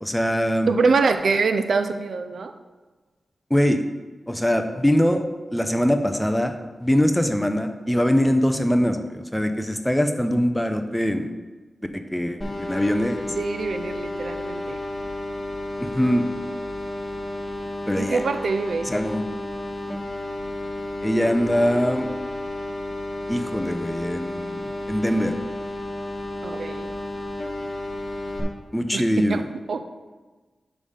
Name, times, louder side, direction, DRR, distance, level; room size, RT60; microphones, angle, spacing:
voice 1, 0.0-0.7 3.5-3.8 4.3-5.3 5.5-11.4 12.1-13.2 15.8-16.2 17.9-18.2 18.9-19.3 21.0-22.1 23.3-25.4 28.7-29.4, equal, 5° left, 7 dB, 0.5 m, -22 dB
voice 2, 0.7-2.5 13.3-14.8 18.0-18.9 26.4-26.9 28.9-29.8, right 4 dB, 70° right, 8 dB, 0.4 m, -24 dB
sound 1, 12.4-28.4, left 1 dB, 25° left, 1.2 m, -32 dB
5.2 x 4.9 x 5.5 m, 1.3 s
wide cardioid pair, 145°, 0 cm